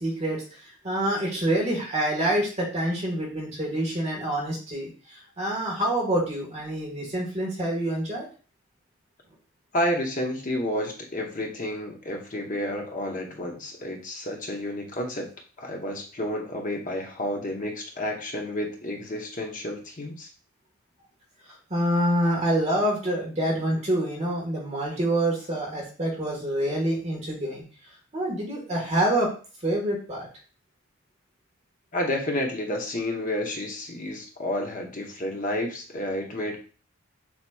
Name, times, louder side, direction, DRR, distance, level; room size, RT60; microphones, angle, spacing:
voice 1, 0.0-8.3 21.7-27.6 28.1-29.3 29.6-30.3, right 1 dB, 30° right, -2 dB, 1.4 m, -26 dB
voice 2, 9.7-15.3 15.6-20.3 31.9-36.6, left 1 dB, 35° left, 2 dB, 0.9 m, -30 dB
7.0 x 2.9 x 2.3 m, 0.37 s
head